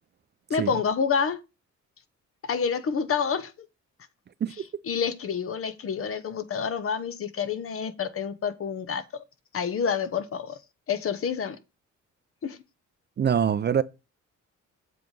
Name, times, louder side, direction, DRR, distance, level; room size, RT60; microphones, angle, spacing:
voice 1, 0.5-1.4 2.4-3.5 4.8-9.2 9.5-10.6 10.9-11.6 12.4-12.6, left 6 dB, 45° left, 0.9 m, -28 dB
voice 2, 13.2-13.8, right 8 dB, 35° right, 0.4 m, -23 dB
7.7 x 3.3 x 5.2 m
cardioid pair, 90°, 30 cm